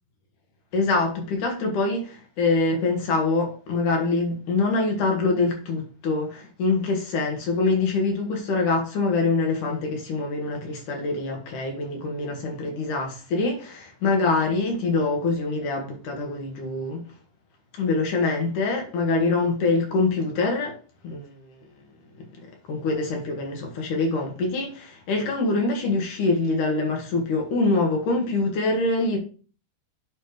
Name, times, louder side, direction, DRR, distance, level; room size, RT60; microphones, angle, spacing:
voice 1, 0.7-17.0 17.8-20.8 21.0-21.5 22.7-29.2, left 3 dB, 70° left, 3.1 m, -24 dB
9.3 x 3.3 x 4.8 m
omnidirectional pair, 3.8 m